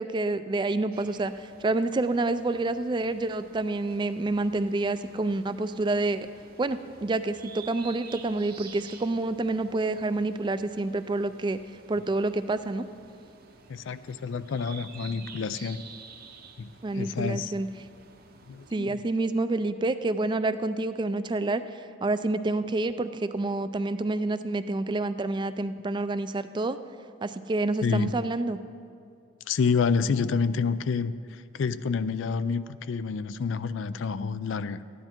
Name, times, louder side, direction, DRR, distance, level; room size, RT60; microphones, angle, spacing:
voice 1, 0.0-6.3 6.6-11.6 11.9-12.9 16.8-17.7 18.7-26.8 27.2-28.6, right 2 dB, 25° right, 12 dB, 0.3 m, -28 dB
sound 1, 0.9-18.8, right 5 dB, 45° right, 0.8 m, -50 dB
voice 2, 13.7-15.8 16.6-17.5 18.5-19.0 27.8-28.1 29.5-34.8, left 5 dB, 70° left, 14 dB, 0.4 m, -28 dB
13.5 x 10.0 x 4.4 m, 2.5 s
head